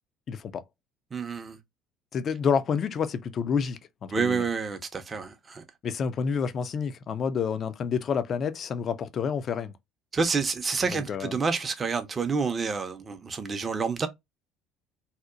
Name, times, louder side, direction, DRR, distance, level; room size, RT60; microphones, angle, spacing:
voice 1, 0.3-0.6 2.1-4.5 5.8-9.7 10.9-11.3, left 6 dB, 45° left, 0.3 m, -29 dB
voice 2, 1.1-1.6 4.1-5.6 10.1-14.1, right 5 dB, 30° right, 0.5 m, -28 dB
2.8 x 2.0 x 2.3 m
hypercardioid pair, 65°, 0 cm